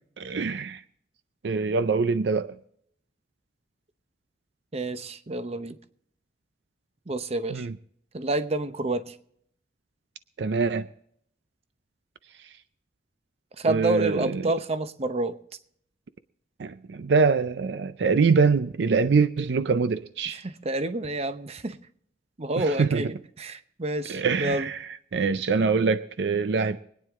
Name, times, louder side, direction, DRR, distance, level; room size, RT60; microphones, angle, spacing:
voice 1, 0.2-0.8 1.4-2.6 7.5-7.7 10.4-10.9 13.6-14.5 16.6-20.4 22.6-23.0 24.1-24.8 25.1-26.8, right 4 dB, 70° right, 0.5 m, -24 dB
voice 2, 4.7-5.8 7.1-7.7 8.1-9.1 13.6-15.4 20.3-21.8 22.4-24.7, right 2 dB, 35° right, 0.8 m, -29 dB
24.0 x 9.5 x 3.6 m
head